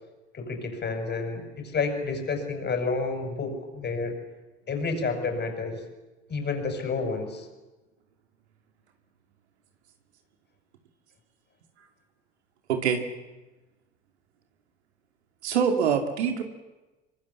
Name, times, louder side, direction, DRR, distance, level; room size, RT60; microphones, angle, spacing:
voice 1, 0.3-4.1 4.7-5.8 6.3-7.5, left 4 dB, 30° left, 5 dB, 6.7 m, -30 dB
voice 2, 12.7-13.0 15.4-16.4, right 7 dB, 75° right, 6 dB, 2.6 m, -24 dB
26.0 x 25.0 x 7.1 m, 1.1 s
figure-of-eight pair, 70°, 34 cm